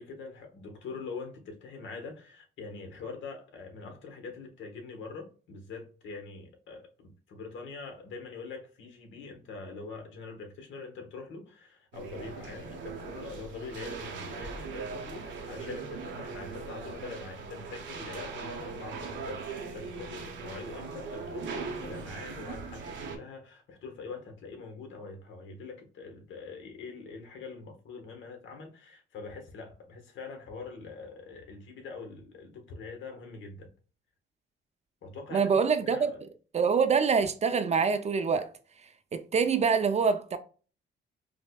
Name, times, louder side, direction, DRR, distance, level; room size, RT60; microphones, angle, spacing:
voice 1, 0.0-33.7 35.0-36.2, left 4 dB, 70° left, 1.0 m, -44 dB
sound 1, 11.9-23.2, right 4 dB, 70° right, 0.8 m, -40 dB
voice 2, 35.3-36.1 36.5-38.5 39.1-40.4, right 5 dB, 35° right, 0.4 m, -25 dB
5.1 x 2.1 x 2.2 m
cardioid pair, 90°, 20 cm